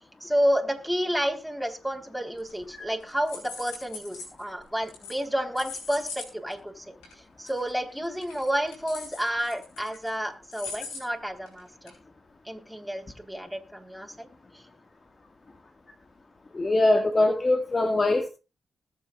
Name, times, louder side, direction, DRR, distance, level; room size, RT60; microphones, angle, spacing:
voice 1, 0.2-6.9 7.4-11.9 12.5-14.3, equal, ahead, 2 dB, 3.8 m, -30 dB
sound 1, 2.4-2.8 3.1-4.4 4.9-5.2 5.6-6.3 6.5-6.6 7.0-7.1 7.5-7.7 8.0-10.1 10.5-11.0 11.5-11.6 11.9-12.0, left 4 dB, 90° left, 4.1 m, -40 dB
voice 2, 16.5-18.3, left 2 dB, 40° left, 7 dB, 1.9 m, -22 dB
20.5 x 7.6 x 2.4 m, 0.30 s
hypercardioid pair, 40°, 0 cm